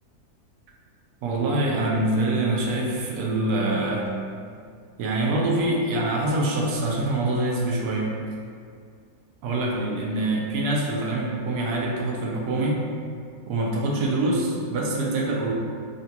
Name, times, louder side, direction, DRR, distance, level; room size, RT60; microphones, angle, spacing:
voice 1, 1.2-4.1 5.0-8.1 9.4-12.8 13.5-15.5, right 2 dB, 75° right, -2 dB, 1.1 m, -25 dB
3.8 x 2.2 x 2.8 m, 2.2 s
omnidirectional pair, 1.8 m